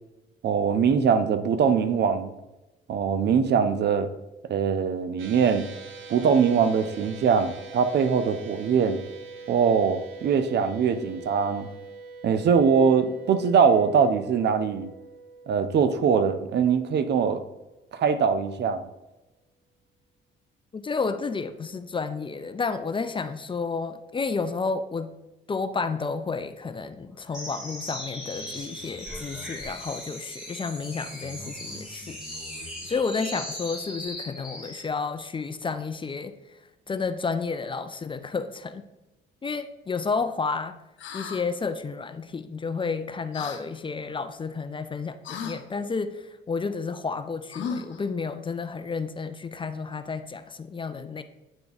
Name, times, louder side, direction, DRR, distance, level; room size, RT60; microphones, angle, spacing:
voice 1, 0.4-2.3 2.9-4.1 4.5-5.6 6.1-9.0 9.5-11.7 12.2-14.9 15.5-17.4 17.9-18.9, right 6 dB, 60° right, 11 dB, 0.6 m, -22 dB
sound 1, 5.2-17.7, right 4 dB, 80° right, 0.9 m, -44 dB
voice 2, 20.7-25.1 25.5-32.2 32.6-36.3 36.9-38.8 39.4-40.8 41.1-51.2, left 4 dB, 25° left, 10 dB, 0.4 m, -31 dB
sound 2, 27.3-34.9, left 1 dB, 5° right, 1.8 m, -38 dB
sound 3, 41.0-41.4 43.3-43.6 45.2-45.6 47.5-48.0, left 6 dB, 70° left, 0.8 m, -34 dB
8.9 x 3.5 x 4.0 m, 1.0 s
cardioid pair, 90°, 20 cm